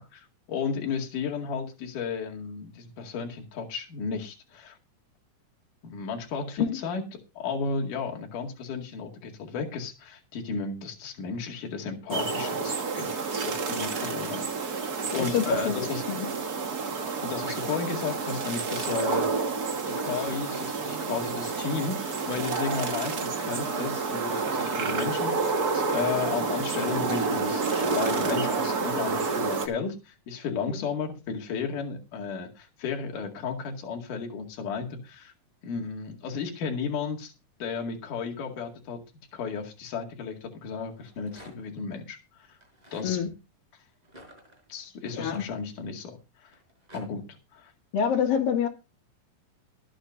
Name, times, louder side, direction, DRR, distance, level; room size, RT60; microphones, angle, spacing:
voice 1, 0.0-4.8 5.8-16.0 17.2-19.3 20.0-35.3 35.6-37.3 37.6-39.0 39.3-42.6 42.9-43.2 44.7-46.5 46.9-47.2 47.5-47.7, left 5 dB, 65° left, 3.7 m, -34 dB
sound 1, 12.1-29.7, right 4 dB, 45° right, 1.3 m, -29 dB
voice 2, 15.2-15.7 16.1-16.3 30.7-30.8 43.0-43.3 45.1-45.5 47.9-48.7, left 7 dB, 85° left, 3.8 m, -26 dB
Rattle, 40.9-41.8 42.5-43.1 44.0-46.0 46.5-47.1, equal, 10° right, 5.7 m, -51 dB
23.0 x 8.8 x 2.6 m
omnidirectional pair, 4.0 m